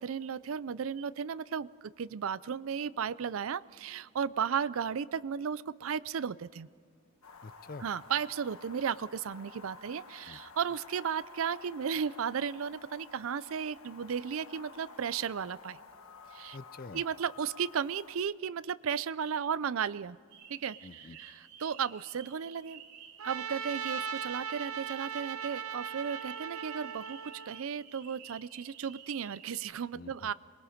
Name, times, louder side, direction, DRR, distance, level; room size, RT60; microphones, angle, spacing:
voice 1, 0.0-6.7 7.8-15.8 16.3-16.6 16.9-20.2 20.5-20.8 21.2-21.3 21.6-22.8 23.2-30.3, right 7 dB, 75° right, 18 dB, 0.4 m, -34 dB
sound 1, 7.2-18.2, left 4 dB, 85° left, 1.5 m, -52 dB
voice 2, 7.4-7.9 10.3-10.4 16.5-17.0 20.8-21.2 29.9-30.3, left 3 dB, 45° left, 15 dB, 0.5 m, -47 dB
sound 2, 20.3-29.6, right 8 dB, 55° right, 2.5 m, -52 dB
Trumpet, 23.2-27.6, right 7 dB, 90° right, 1.0 m, -39 dB
27.0 x 21.5 x 5.1 m, 2.1 s
head